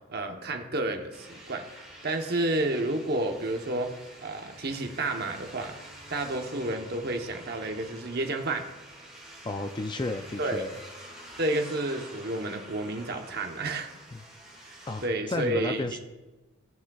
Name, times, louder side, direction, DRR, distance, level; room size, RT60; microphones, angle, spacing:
voice 1, 0.1-1.6 2.0-3.9 4.2-5.7 6.1-8.7 10.4-10.6 11.4-13.9 14.7-15.9, right 2 dB, 50° right, 4 dB, 0.9 m, -30 dB
sound 1, 1.1-15.1, right 1 dB, 5° right, 1.9 m, -48 dB
voice 2, 9.4-10.7 14.1-14.2 14.9-16.0, left 2 dB, 20° left, 7 dB, 0.4 m, -33 dB
17.5 x 6.1 x 2.3 m, 1.2 s
head